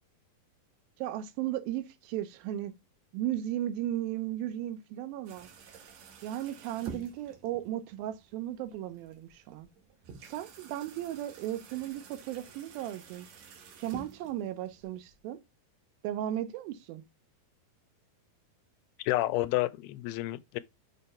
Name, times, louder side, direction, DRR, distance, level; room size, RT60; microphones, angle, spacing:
voice 1, 1.0-2.7 3.1-5.5 6.2-9.7 10.3-13.3 13.8-15.4 16.0-17.0, right 12 dB, 85° right, 2.5 m, -35 dB
sound 1, 5.3-15.3, right 5 dB, 65° right, 2.0 m, -50 dB
voice 2, 19.0-20.6, left 18 dB, 85° left, 2.3 m, -30 dB
6.7 x 3.4 x 4.2 m
omnidirectional pair, 4.2 m